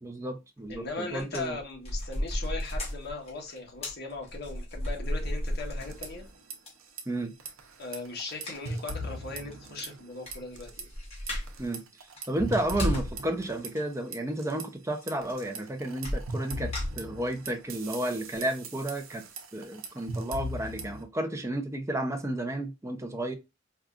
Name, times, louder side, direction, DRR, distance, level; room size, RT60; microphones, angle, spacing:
voice 1, 0.0-1.6 7.1-7.3 11.6-11.8 12.3-19.2 19.5-23.3, right 1 dB, 15° right, 0.5 m, -32 dB
voice 2, 0.7-6.3 7.8-10.9, left 3 dB, 55° left, 1.2 m, -39 dB
sound 1, 0.7-0.9 1.1-6.3 6.7-6.8 8.5-8.8 9.1-9.2 9.5-9.6 9.8-11.6 12.0-13.2 13.5-13.8 15.0-15.1 15.3-15.6 16.0-17.5 17.9-18.0 18.3-18.4, equal, 30° left, 1.7 m, -34 dB
sound 2, 5.8-6.6 6.8-7.0 7.4-10.1 10.3-10.8 11.3-14.6 15.1-21.0, right 1 dB, 80° right, 0.7 m, -39 dB
4.7 x 2.4 x 2.4 m
head